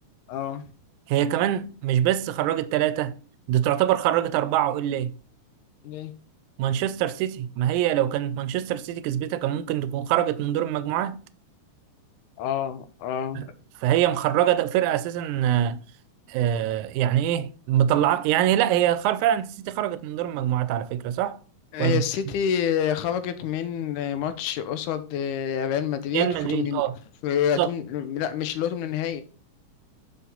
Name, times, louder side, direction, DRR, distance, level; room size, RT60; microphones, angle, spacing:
voice 1, 0.3-0.6 5.8-6.1 12.4-13.5 21.7-26.8 27.2-29.2, left 9 dB, 90° left, 2.3 m, -27 dB
voice 2, 1.1-3.2 3.5-5.1 6.6-11.3 13.4-13.5 13.8-15.8 16.3-21.4 21.8-22.0 26.1-26.9 27.6-27.7, right 11 dB, 85° right, 2.0 m, -24 dB
5.8 x 5.7 x 3.8 m
omnidirectional pair, 3.4 m